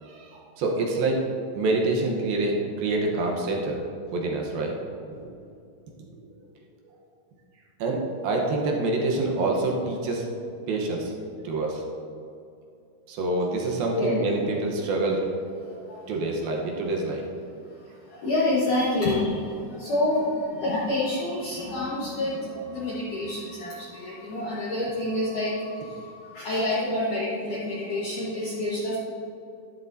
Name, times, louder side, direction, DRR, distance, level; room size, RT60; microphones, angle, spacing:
voice 1, 0.0-1.2 1.6-3.8 4.1-4.7 5.2-5.3 7.8-10.3 10.5-11.8 13.1-15.2 16.1-17.3 23.1-23.2, right 2 dB, 70° right, 0 dB, 2.5 m, -26 dB
voice 2, 15.6-16.0 17.8-29.0, left 1 dB, 60° left, -7 dB, 2.3 m, -28 dB
12.5 x 11.0 x 2.7 m, 2.5 s
omnidirectional pair, 5.1 m